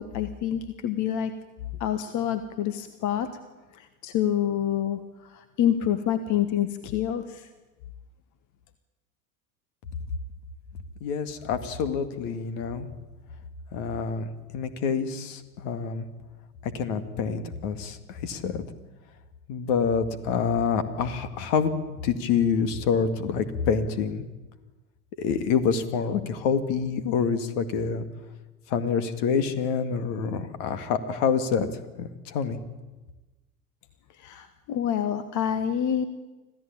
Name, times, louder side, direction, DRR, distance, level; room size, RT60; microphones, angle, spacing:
voice 1, 0.0-1.3 1.8-3.3 3.7-7.5 34.2-36.1, left 10 dB, 40° left, 11 dB, 1.4 m, -27 dB
voice 2, 11.0-12.9 13.7-14.3 14.5-16.1 16.6-18.6 19.5-24.3 25.2-28.1 28.7-31.7 32.0-32.6, left 6 dB, 55° left, 10 dB, 2.2 m, -27 dB
26.0 x 15.5 x 8.7 m, 1.2 s
figure-of-eight pair, 80°, 44 cm